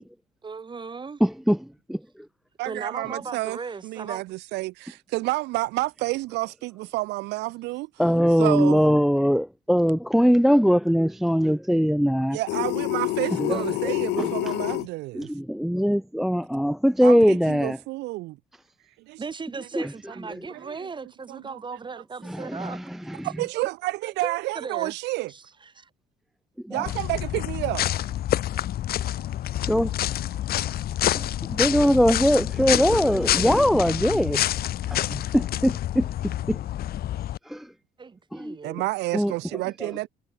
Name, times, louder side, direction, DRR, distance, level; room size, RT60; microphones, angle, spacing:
voice 1, 0.4-1.2 2.6-4.2 19.2-22.8 24.2-24.9 25.3-25.9 38.0-38.7, right 5 dB, 30° right, 7.7 m, -37 dB
voice 2, 1.2-2.0 8.0-12.4 13.4-14.3 15.1-17.8 19.8-19.9 22.2-23.3 26.6-26.9 29.7-29.9 31.2-34.4 34.9-36.6 37.5-37.7 38.3-38.8 39.1-39.9, equal, ahead, 0.4 m, -22 dB
voice 3, 2.6-3.6 3.8-7.9 8.4-8.8 12.3-15.3 17.0-18.4 19.1-19.2 20.5-20.8 21.3-21.6 23.2-25.3 26.7-27.8 38.6-40.1, right 20 dB, 85° right, 1.2 m, -30 dB
sound 1, 12.5-14.9, left 20 dB, 85° left, 0.6 m, -27 dB
sound 2, 26.9-37.4, left 12 dB, 65° left, 2.8 m, -27 dB
cardioid pair, 110°, 17 cm